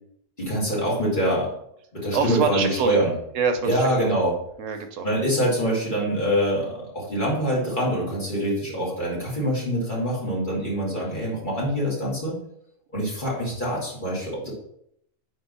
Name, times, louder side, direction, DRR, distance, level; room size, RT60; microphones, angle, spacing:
voice 1, 0.4-1.5 1.9-3.1 3.6-4.4 5.0-12.4 12.9-14.5, equal, 40° left, -6 dB, 2.5 m, -25 dB
voice 2, 2.1-3.0 3.3-4.1 4.6-5.1 5.4-5.5 14.4-14.5, right 6 dB, 75° right, 7 dB, 1.1 m, -26 dB
4.8 x 4.4 x 5.4 m, 0.73 s
omnidirectional pair, 1.3 m